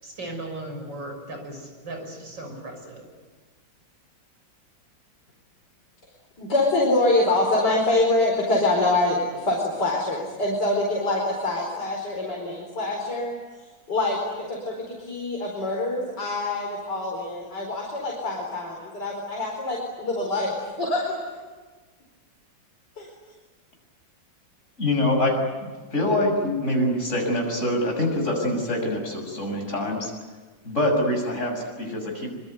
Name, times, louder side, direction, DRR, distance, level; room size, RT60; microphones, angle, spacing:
voice 1, 0.0-3.1, right 1 dB, 70° right, 4 dB, 6.8 m, -37 dB
voice 2, 6.4-13.3 13.9-21.2 23.0-23.1, left 2 dB, 60° left, -1 dB, 5.3 m, -25 dB
voice 3, 24.8-25.4 25.9-30.1 30.7-32.3, left 1 dB, 40° left, 1 dB, 7.1 m, -24 dB
25.5 x 24.0 x 9.5 m, 1.4 s
omnidirectional pair, 2.1 m